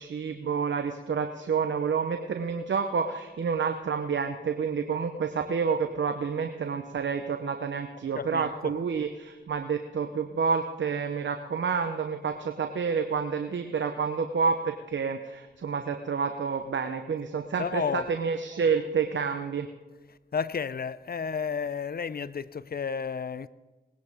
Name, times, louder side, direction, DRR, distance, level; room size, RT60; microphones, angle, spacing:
voice 1, 0.0-19.7, right 6 dB, 65° right, 0.8 m, -29 dB
voice 2, 8.1-8.7 17.6-18.1 20.3-23.5, left 6 dB, 50° left, 0.5 m, -32 dB
19.5 x 10.5 x 3.6 m
cardioid pair, 45°, 20 cm